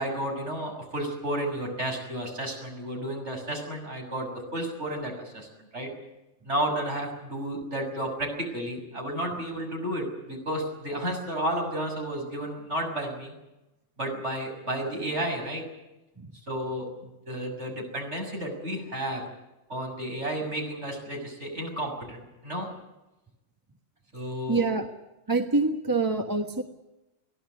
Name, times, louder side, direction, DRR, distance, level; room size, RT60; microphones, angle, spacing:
voice 1, 0.0-5.5 5.7-5.9 6.4-13.3 14.0-15.6 16.5-16.9 17.3-19.2 19.7-22.7 24.1-24.6, right 1 dB, 65° right, 1 dB, 7.1 m, -32 dB
voice 2, 24.5-24.9 25.3-26.6, right 3 dB, 15° right, 5 dB, 1.3 m, -26 dB
23.0 x 16.5 x 9.4 m, 0.97 s
omnidirectional pair, 1.3 m